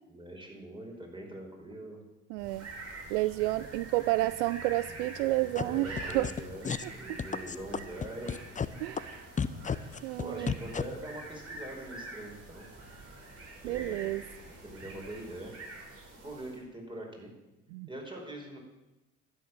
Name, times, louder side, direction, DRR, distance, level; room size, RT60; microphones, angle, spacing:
voice 1, 0.1-2.0 5.5-6.7 6.9-8.9 9.7-12.7 13.6-15.6 16.2-17.3 17.9-18.6, right 1 dB, 15° right, 0 dB, 5.3 m, -43 dB
voice 2, 2.3-2.7 3.1-5.9 6.1-6.3 6.8-6.9 8.8-9.2 10.0-10.5 13.6-14.2 17.7-17.9, right 18 dB, 70° right, 17 dB, 0.5 m, -30 dB
sound 1, 2.4-16.7, right 2 dB, 40° right, 5.4 m, -46 dB
sound 2, 5.6-5.7 6.0-6.4 6.6-6.8 7.2-8.7 9.0-9.1 9.4-10.8, left 6 dB, 20° left, 0.7 m, -31 dB
12.0 x 10.0 x 7.4 m, 0.99 s
hypercardioid pair, 65°, 37 cm